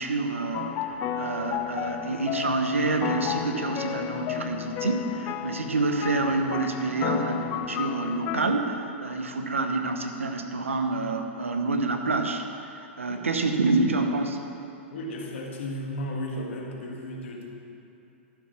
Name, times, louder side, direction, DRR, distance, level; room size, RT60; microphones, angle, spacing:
voice 1, 0.0-12.4 12.7-14.4, right 3 dB, 90° right, 5 dB, 1.1 m, -27 dB
sound 1, 0.5-8.5, left 11 dB, 35° left, 0.5 m, -33 dB
voice 2, 14.9-17.5, left 1 dB, 70° left, 0 dB, 2.0 m, -34 dB
12.5 x 7.0 x 5.8 m, 2.9 s
hypercardioid pair, 105°, 7 cm